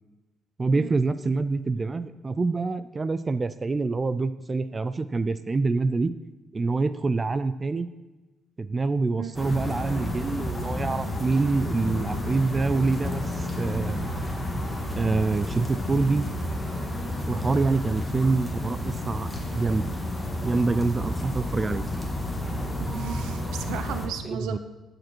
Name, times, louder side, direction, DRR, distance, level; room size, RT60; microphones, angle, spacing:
voice 1, 0.6-6.1 6.5-7.9 8.6-14.1 15.0-16.3 17.3-19.9 20.4-21.9 24.3-24.6, right 3 dB, 30° right, 13 dB, 0.3 m, -26 dB
sound 1, 9.3-24.1, left 1 dB, 10° left, 1.7 m, -31 dB
voice 2, 22.8-24.6, right 9 dB, 90° right, 9 dB, 0.7 m, -35 dB
12.0 x 5.2 x 4.5 m, 1.1 s
cardioid pair, 90°, 0 cm